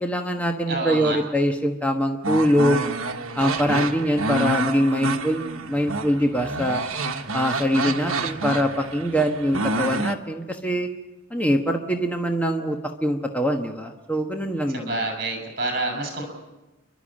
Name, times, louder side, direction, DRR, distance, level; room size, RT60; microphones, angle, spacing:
voice 1, 0.0-2.8 3.4-6.8 7.3-10.9 11.3-15.0, equal, 5° left, 3 dB, 1.2 m, -23 dB
voice 2, 0.7-1.2 14.7-16.2, right 2 dB, 50° right, 3 dB, 6.3 m, -27 dB
sound 1, 2.2-10.1, right 3 dB, 70° right, 1.3 m, -28 dB
30.0 x 12.5 x 8.7 m, 1.1 s
head